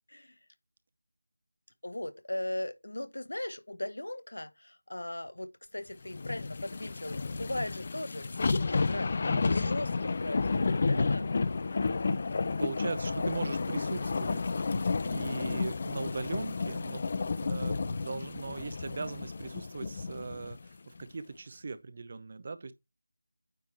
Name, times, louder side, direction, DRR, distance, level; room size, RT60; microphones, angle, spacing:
voice 1, 1.8-11.3 12.9-13.2, left 1 dB, 75° left, 0.9 m, -38 dB
sound 1, 6.1-20.6 21.0-21.1, left 4 dB, 35° left, 0.4 m, -31 dB
voice 2, 9.3-9.7 10.8-11.2 11.8-11.9 12.6-17.0 17.4-22.7, right 4 dB, 35° right, 0.7 m, -39 dB
9.0 x 3.6 x 4.4 m
figure-of-eight pair, 165°, 0 cm